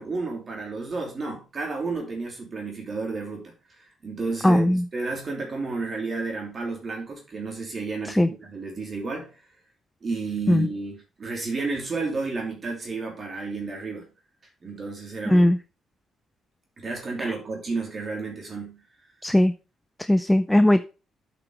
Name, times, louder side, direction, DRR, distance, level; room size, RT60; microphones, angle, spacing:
voice 1, 0.0-9.3 10.0-14.0 14.6-15.5 16.8-18.8, right 3 dB, 40° right, 0 dB, 2.8 m, -32 dB
voice 2, 4.4-4.8 8.1-8.3 10.5-10.7 15.3-15.6 17.2-17.3 19.2-19.5 20.0-20.8, left 1 dB, 10° left, 12 dB, 0.4 m, -19 dB
7.8 x 6.1 x 4.8 m, 0.33 s
cardioid pair, 105°, 0 cm